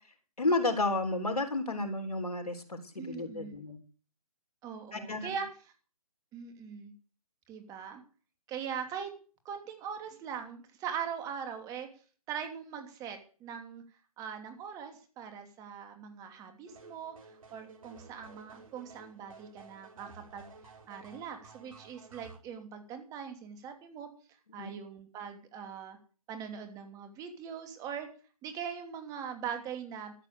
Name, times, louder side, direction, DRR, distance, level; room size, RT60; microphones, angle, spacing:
voice 1, 0.4-3.8 4.9-5.3 24.6-24.7, left 2 dB, 85° left, 5 dB, 3.8 m, -31 dB
voice 2, 3.0-3.6 4.6-5.5 6.3-6.9 7.5-8.0 8.5-9.1 9.4-11.9 12.3-13.8 14.2-17.1 17.5-20.5 20.9-24.1 24.5-26.0 26.3-28.1 28.4-30.1, right 7 dB, 20° right, 6 dB, 3.0 m, -41 dB
sound 1, 16.7-22.4, right 4 dB, 65° right, 3.7 m, -53 dB
14.0 x 8.1 x 8.4 m, 0.39 s
figure-of-eight pair, 145°, 19 cm